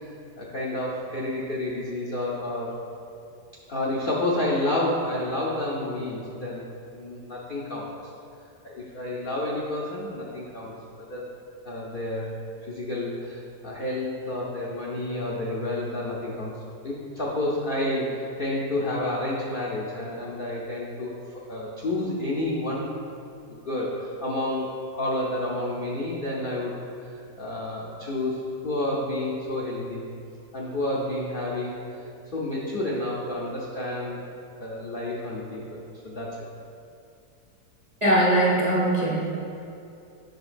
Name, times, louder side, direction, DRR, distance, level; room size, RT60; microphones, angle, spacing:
voice 1, 0.0-2.8 3.7-6.7 6.9-8.1 8.6-11.3 11.6-12.2 12.6-16.5 16.8-22.9 23.5-26.8 27.1-30.0 30.5-34.2 34.6-36.5, left 1 dB, 60° left, -5 dB, 0.5 m, -30 dB
voice 2, 38.0-39.3, right 1 dB, 45° right, -5 dB, 0.5 m, -21 dB
7.8 x 5.7 x 2.5 m, 2.6 s
omnidirectional pair, 1.7 m